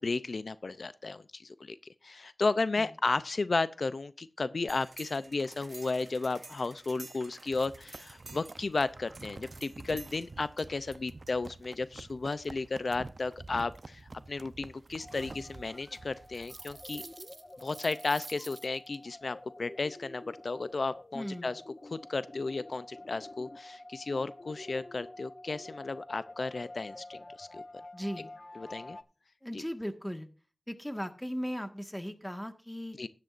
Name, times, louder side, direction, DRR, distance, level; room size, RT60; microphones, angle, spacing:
voice 1, 0.0-1.8 2.0-17.0 17.6-27.6 28.6-29.0 29.5-29.6 33.0-33.1, left 3 dB, 75° left, 14 dB, 0.5 m, -34 dB
sound 1, 4.7-19.0, right 3 dB, 60° right, 0.7 m, -48 dB
sound 2, 15.0-29.0, left 2 dB, 40° left, 0.9 m, -49 dB
voice 2, 21.1-21.5 27.9-28.3 29.4-30.3 30.7-33.0, equal, 10° left, 8 dB, 1.6 m, -37 dB
15.5 x 10.5 x 2.6 m, 0.33 s
wide cardioid pair, 50°, 0 cm